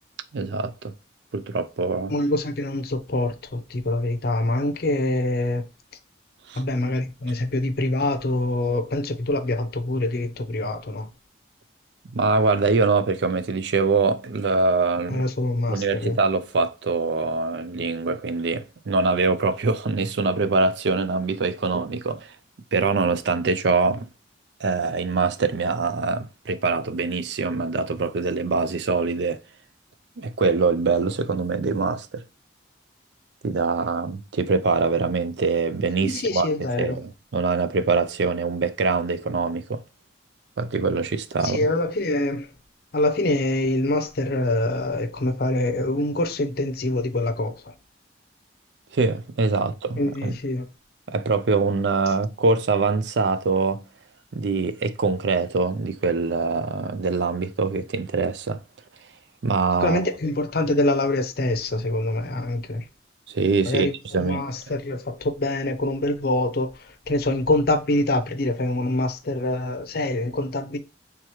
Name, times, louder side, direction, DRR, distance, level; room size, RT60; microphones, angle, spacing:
voice 1, 0.3-0.9 1.3-2.1 6.5-6.6 12.1-15.3 15.7-22.3 22.7-24.1 24.6-29.4 30.2-32.2 33.4-39.8 40.6-41.7 48.9-50.4 51.1-53.8 54.3-58.6 59.4-60.0 63.3-63.9 64.1-64.4, right 4 dB, 65° right, 0.4 m, -24 dB
voice 2, 2.1-5.6 6.6-11.1 15.1-16.2 36.0-37.0 41.4-42.5 42.9-47.5 50.0-50.7 59.8-62.9 63.7-70.8, left 1 dB, 55° left, 0.6 m, -25 dB
4.8 x 3.5 x 2.9 m
head